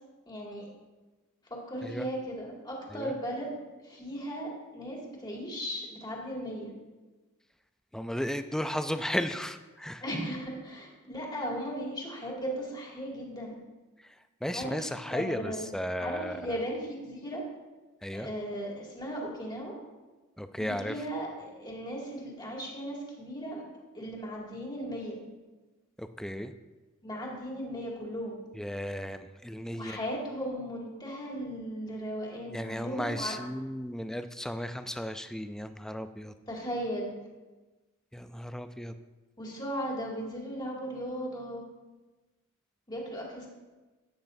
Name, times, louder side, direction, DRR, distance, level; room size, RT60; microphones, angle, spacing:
voice 1, 0.3-0.7 1.5-6.7 10.0-13.5 14.5-14.8 15.1-15.6 16.0-17.4 18.1-19.7 20.6-23.6 23.9-25.2 27.0-28.4 29.7-33.3 36.5-37.1 39.4-41.6 42.9-43.5, equal, 20° left, -3 dB, 2.2 m, -37 dB
voice 2, 7.9-10.0 14.0-16.6 18.0-18.3 20.4-21.1 26.0-26.5 28.5-30.0 32.5-36.3 38.1-38.9, equal, 5° left, 9 dB, 0.4 m, -35 dB
13.0 x 9.0 x 2.7 m, 1.2 s
head